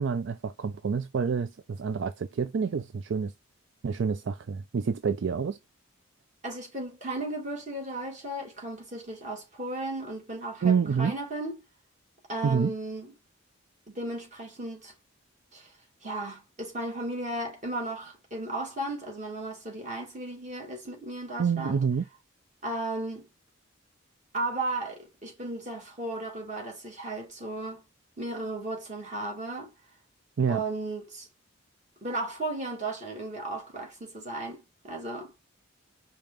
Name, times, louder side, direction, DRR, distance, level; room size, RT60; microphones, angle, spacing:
voice 1, 0.0-3.3 3.8-5.6 10.6-11.1 12.4-12.7 21.4-22.1 30.4-30.6, right 6 dB, 60° right, 0.4 m, -27 dB
voice 2, 6.4-11.6 12.3-13.1 13.9-14.9 15.5-15.7 16.0-21.8 22.6-23.3 24.3-27.8 28.2-29.7 30.5-31.3 32.0-35.3, right 2 dB, 35° right, 2.4 m, -35 dB
5.2 x 2.9 x 3.4 m
head